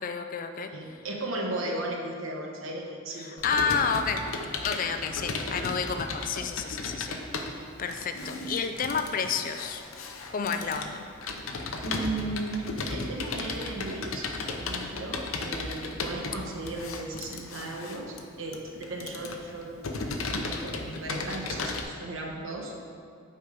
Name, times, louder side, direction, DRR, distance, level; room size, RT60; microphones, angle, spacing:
voice 1, 0.0-0.7 3.2-4.2 4.6-7.2 7.8-9.8 10.3-11.0, left 6 dB, 40° left, 7 dB, 0.4 m, -30 dB
voice 2, 0.7-3.8 11.8-19.7 20.3-22.7, right 2 dB, 70° right, 0 dB, 1.1 m, -36 dB
Computer keyboard, 3.4-21.8, left 3 dB, 80° left, 0.7 m, -35 dB
8.4 x 4.5 x 5.0 m, 2.3 s
head